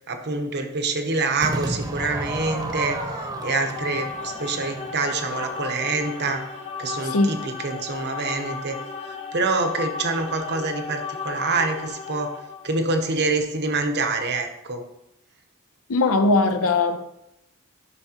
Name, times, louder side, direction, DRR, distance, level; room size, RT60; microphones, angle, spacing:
voice 1, 0.1-3.0 3.4-6.4 6.8-8.8 9.3-12.3 12.6-14.8, right 3 dB, 50° right, 1.0 m, -26 dB
Crowd / Fireworks, 1.4-6.7, right 1 dB, 20° right, 0.9 m, -33 dB
sound 1, 3.3-12.8, left 5 dB, 30° left, 0.8 m, -35 dB
voice 2, 7.0-7.4 15.9-17.1, left 3 dB, 75° left, 0.7 m, -20 dB
11.0 x 5.8 x 2.9 m
head